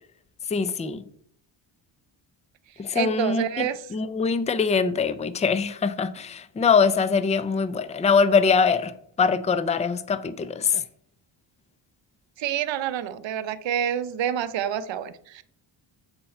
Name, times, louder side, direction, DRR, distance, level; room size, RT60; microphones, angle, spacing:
voice 1, 0.5-1.0 2.8-10.8, left 5 dB, 15° left, 13 dB, 0.4 m, -23 dB
voice 2, 2.9-3.8 12.4-15.4, right 9 dB, 60° right, 14 dB, 0.6 m, -28 dB
7.8 x 4.3 x 4.3 m, 0.66 s
cardioid pair, 90°, 50 cm